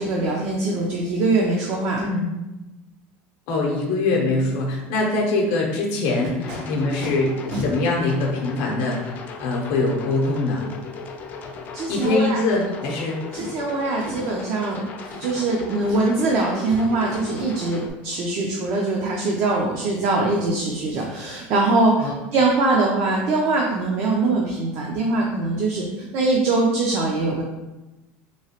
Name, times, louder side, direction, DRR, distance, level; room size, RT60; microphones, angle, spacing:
voice 1, 0.0-2.0 11.7-12.4 13.3-14.9 15.2-27.4, right 3 dB, 45° right, -1 dB, 0.5 m, -22 dB
voice 2, 3.5-10.7 11.9-13.2 22.0-22.1, left 2 dB, 70° left, -1 dB, 0.6 m, -23 dB
Packing tape duct tape, 6.0-6.6 7.0-7.1 7.5-7.7 8.5-8.6 11.9-12.3 12.8-12.9 13.3-13.6 14.0-14.4 15.0-15.5 15.8-16.3 16.6-16.8 17.1-17.5 20.5-20.6 20.9-21.1 21.4-21.6 21.9-22.1 22.4-22.5, equal, 75° right, 1.2 m, -35 dB
sound 1, 6.4-17.9, left 5 dB, 35° left, 0.3 m, -37 dB
3.0 x 2.8 x 2.8 m, 1.0 s
cardioid pair, 160°, 5 cm